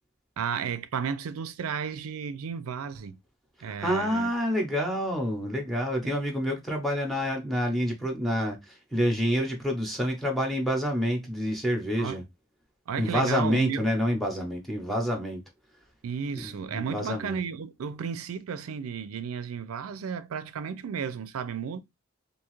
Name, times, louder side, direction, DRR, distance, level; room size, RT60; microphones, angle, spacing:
voice 1, 0.4-3.1 3.6-4.3 6.0-6.1 12.0-12.2 12.9-13.9 16.0-21.8, right 6 dB, 90° right, 0.4 m, -33 dB
voice 2, 3.6-12.2 13.0-15.4 16.4-17.4, equal, ahead, 0.6 m, -28 dB
2.7 x 2.3 x 3.0 m
head